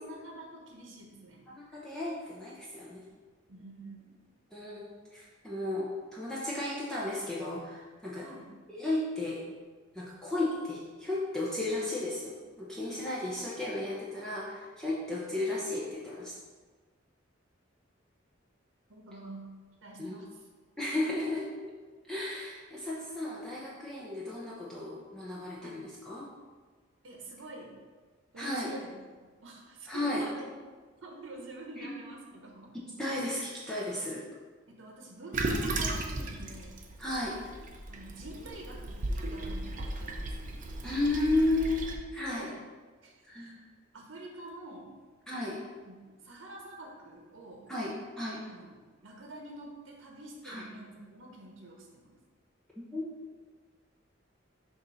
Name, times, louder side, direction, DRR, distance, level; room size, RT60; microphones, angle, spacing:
voice 1, 0.0-1.5 3.5-4.2 8.2-8.5 18.9-19.5 19.8-20.5 25.6-25.8 27.0-27.8 28.3-30.5 31.0-32.7 34.7-36.8 37.9-40.6 42.2-42.6 43.0-43.5 43.9-44.9 45.8-47.7 48.5-52.1, right 2 dB, 70° right, 0 dB, 0.9 m, -47 dB
voice 2, 1.5-3.0 4.5-8.2 8.7-9.4 9.9-16.3 20.0-20.2 20.8-21.7 22.1-26.2 28.4-28.7 29.9-30.2 31.8-31.9 33.0-34.2 37.0-37.4 40.8-42.5 43.2-43.7 45.3-45.6 47.7-48.4 50.4-50.7 52.8-53.1, left 2 dB, 5° left, -7 dB, 0.7 m, -34 dB
Toilet flush, 35.3-41.9, right 2 dB, 45° right, 0.6 m, -36 dB
6.7 x 2.7 x 5.5 m, 1.4 s
head